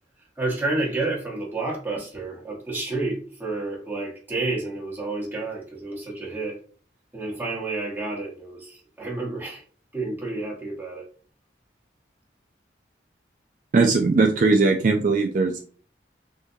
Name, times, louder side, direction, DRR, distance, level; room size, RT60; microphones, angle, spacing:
voice 1, 0.4-6.6 7.1-9.6 9.9-11.0, right 2 dB, 10° right, -3 dB, 0.9 m, -30 dB
voice 2, 13.7-15.6, right 3 dB, 45° right, 3 dB, 0.3 m, -19 dB
3.6 x 2.7 x 2.6 m, 0.44 s
head